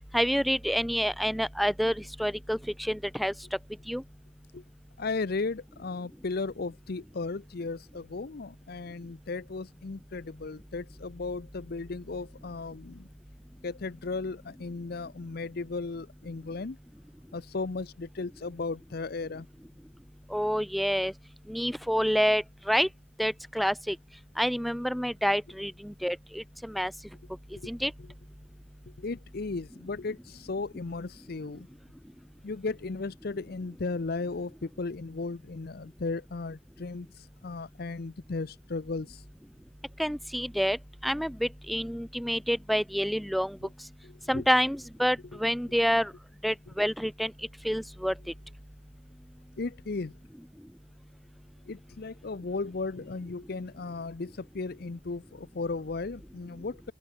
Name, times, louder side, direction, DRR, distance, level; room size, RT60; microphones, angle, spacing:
voice 1, 0.1-3.3 3.9-4.0 20.3-21.1 21.5-22.9 23.2-24.0 24.4-26.9 27.7-27.9 40.0-40.8 41.0-43.6 44.3-46.1 46.4-47.3 47.6-48.1, equal, ahead, 0.5 m, -28 dB
voice 2, 5.0-13.1 13.6-16.8 17.3-19.5 27.6-27.7 28.0-28.1 29.0-31.7 32.4-39.2 44.0-44.4 49.6-50.1 51.7-56.9, left 3 dB, 50° left, 0.6 m, -35 dB
open air
head